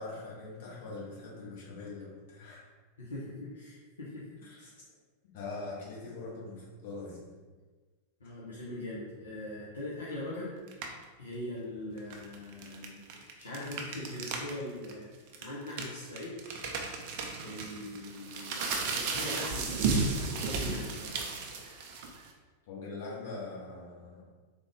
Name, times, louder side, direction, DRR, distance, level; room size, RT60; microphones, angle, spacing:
voice 1, 0.0-2.6 4.4-4.7 5.3-7.3 8.2-8.3 22.7-24.2, left 3 dB, 50° left, -6 dB, 1.2 m, -42 dB
voice 2, 3.0-4.2 8.2-10.5 11.2-15.1 15.4-16.3 17.4-21.2, left 1 dB, 75° left, -8 dB, 0.7 m, -41 dB
sound 1, 10.7-11.0 12.0-14.5 14.8-14.9 15.3-22.3, right 4 dB, 45° right, 0.4 m, -34 dB
3.6 x 2.4 x 3.3 m, 1.4 s
figure-of-eight pair, 90°, 0 cm